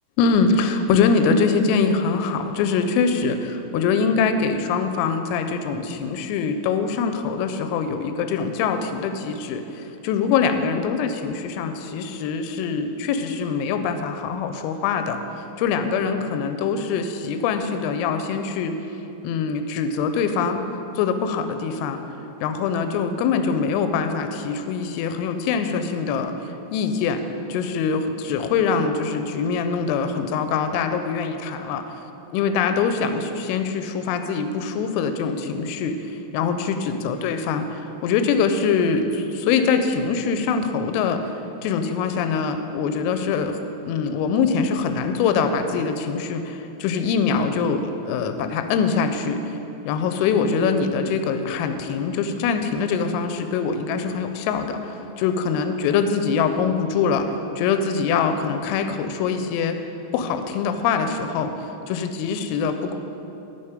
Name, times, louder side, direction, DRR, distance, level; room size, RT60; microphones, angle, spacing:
voice 1, 0.2-18.7 19.2-20.7 21.0-22.0 22.4-26.3 26.7-27.2 27.5-31.8 32.3-41.2 41.6-49.6 49.8-59.8 60.1-61.5 61.9-63.0, left 5 dB, 90° left, 8 dB, 3.2 m, -23 dB
8.8 x 6.9 x 4.9 m, 3.0 s
omnidirectional pair, 5.9 m